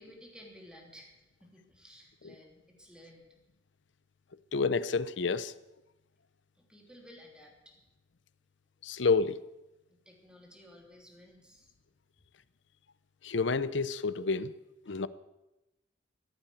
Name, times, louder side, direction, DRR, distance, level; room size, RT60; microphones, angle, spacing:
voice 1, 0.0-3.3 6.6-7.8 10.0-11.7, equal, 5° right, 3.2 m, -54 dB
voice 2, 4.5-5.5 8.8-9.4 13.2-14.5 14.9-15.1, left 4 dB, 75° left, 0.7 m, -29 dB
15.0 x 8.9 x 9.3 m
head